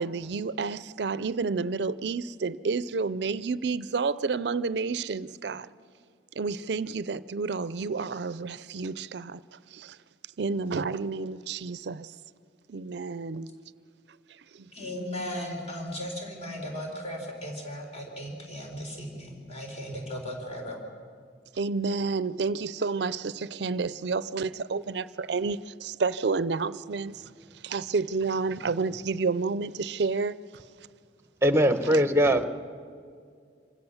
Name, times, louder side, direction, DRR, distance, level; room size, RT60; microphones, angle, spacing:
voice 1, 0.0-5.7 6.4-9.4 9.7-10.0 10.4-12.1 12.7-13.5 14.5-14.7 21.6-27.2 27.6-30.4 31.9-32.0, right 4 dB, 70° right, 0.5 m, -30 dB
voice 2, 14.7-20.8, equal, 35° left, 4.2 m, -36 dB
voice 3, 31.4-32.5, equal, 15° right, 0.9 m, -21 dB
26.0 x 16.0 x 7.1 m
head